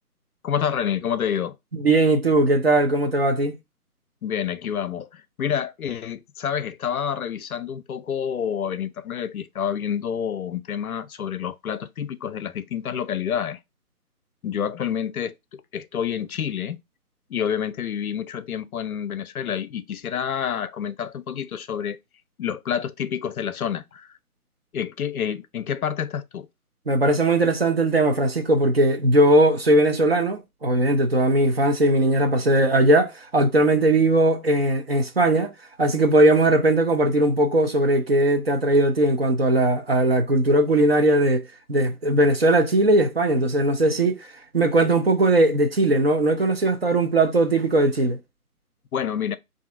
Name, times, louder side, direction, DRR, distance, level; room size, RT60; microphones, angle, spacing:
voice 1, 0.4-1.6 4.2-13.6 14.4-16.8 17.3-22.0 22.4-24.1 24.7-26.5 48.9-49.3, left 8 dB, 65° left, 0.6 m, -28 dB
voice 2, 1.8-3.6 26.9-35.5 35.8-41.4 41.7-44.3 44.5-48.2, right 1 dB, 40° right, 0.6 m, -19 dB
4.1 x 2.6 x 3.7 m
hypercardioid pair, 160°, 46 cm